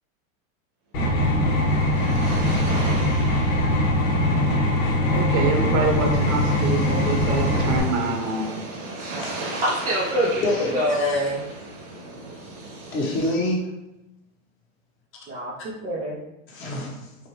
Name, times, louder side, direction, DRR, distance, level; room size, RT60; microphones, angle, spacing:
sound 1, 0.9-7.8, left 1 dB, 75° left, 1.3 m, -21 dB
sound 2, 1.1-13.3, right 2 dB, 45° right, 0.9 m, -36 dB
voice 1, 5.1-8.5, right 4 dB, 70° right, 1 dB, 1.1 m, -25 dB
voice 2, 9.6-10.5 10.7-11.4 15.3-16.2, equal, 20° right, -6 dB, 0.3 m, -25 dB
voice 3, 10.4-11.3 12.9-13.6 16.5-17.0, left 1 dB, 30° left, -2 dB, 0.9 m, -26 dB
4.6 x 2.1 x 2.9 m, 0.93 s
supercardioid pair, 130°, 40 cm